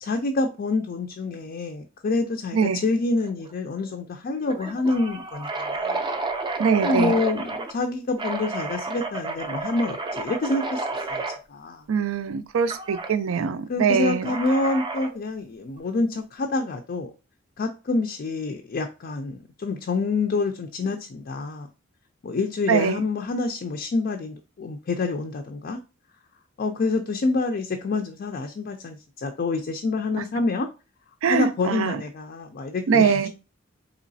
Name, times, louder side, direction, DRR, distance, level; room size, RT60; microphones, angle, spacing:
voice 1, 0.0-6.1 6.8-11.2 11.5-11.8 13.7-17.1 17.6-21.7 22.2-25.8 26.6-30.7 31.3-33.3, left 3 dB, 45° left, 0.4 m, -27 dB
voice 2, 2.5-2.8 6.6-7.1 11.9-14.3 22.7-23.1 31.2-32.0 32.9-33.3, right 6 dB, 90° right, 0.4 m, -22 dB
sound 1, 3.2-3.5 3.8-3.9 4.5-7.7 8.2-11.4 12.7-13.1 14.2-15.2, right 3 dB, 25° right, 0.4 m, -31 dB
3.9 x 3.0 x 2.6 m
head